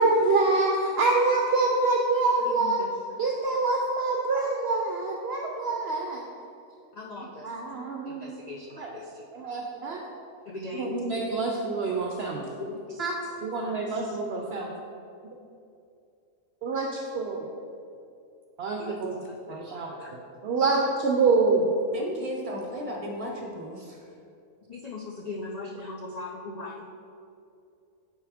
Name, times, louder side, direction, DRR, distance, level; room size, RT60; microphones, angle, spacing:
voice 1, 0.0-2.8 3.2-6.2 7.4-8.4 8.8-8.9 9.3-10.0 10.8-12.4 13.0-13.1 13.4-14.7 16.6-17.5 18.6-19.2 19.5-19.9 20.4-21.7, right 3 dB, 60° right, 0 dB, 0.8 m, -26 dB
voice 2, 7.0-7.5 8.2-8.7 8.9-9.0 10.5-10.9 12.6-12.7 13.6-13.7 18.8-18.9 19.5-19.6 20.0-20.1 24.7-26.8, left 2 dB, 65° left, -1 dB, 0.4 m, -38 dB
voice 3, 21.9-24.1, equal, 30° right, -1 dB, 0.9 m, -35 dB
8.2 x 4.1 x 4.9 m, 2.5 s
omnidirectional pair, 1.4 m